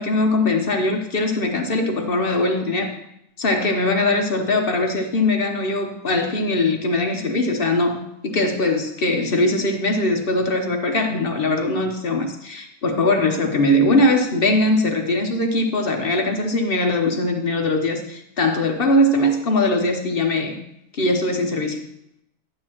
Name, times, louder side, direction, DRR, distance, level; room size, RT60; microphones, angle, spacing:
voice 1, 0.0-2.9 3.4-20.6 20.9-21.8, left 2 dB, 50° left, 4 dB, 0.9 m, -21 dB
11.0 x 8.4 x 2.9 m, 0.79 s
omnidirectional pair, 1.4 m